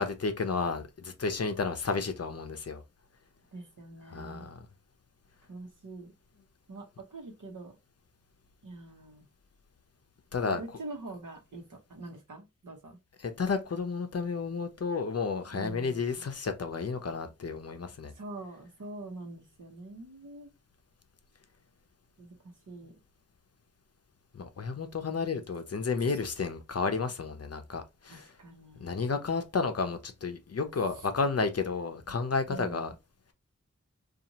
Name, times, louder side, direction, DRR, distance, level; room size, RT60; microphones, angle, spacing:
voice 1, 0.0-2.8 4.1-4.6 10.3-10.6 13.2-18.1 24.3-28.3 28.8-32.9, left 4 dB, 50° left, 0.6 m, -32 dB
voice 2, 3.5-4.5 5.5-6.1 6.7-7.7 8.6-9.2 10.4-13.0 15.5-16.2 18.2-20.5 22.2-22.3 22.7-22.9 28.1-29.0 32.5-32.9, right 2 dB, 80° right, 0.9 m, -44 dB
2.7 x 2.4 x 2.8 m
wide cardioid pair, 55°, 31 cm